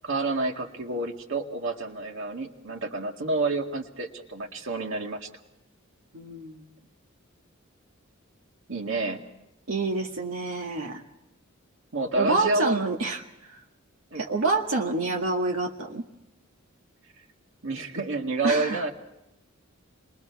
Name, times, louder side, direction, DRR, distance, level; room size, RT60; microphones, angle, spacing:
voice 1, 0.0-5.3 8.7-9.2 11.9-12.8 14.1-14.2 17.6-18.9, right 3 dB, 70° right, 3 dB, 2.1 m, -29 dB
voice 2, 6.1-6.7 9.7-11.0 12.1-13.6 14.1-16.0 18.4-18.8, right 3 dB, 90° right, 0 dB, 1.8 m, -27 dB
29.5 x 22.0 x 4.7 m, 0.88 s
head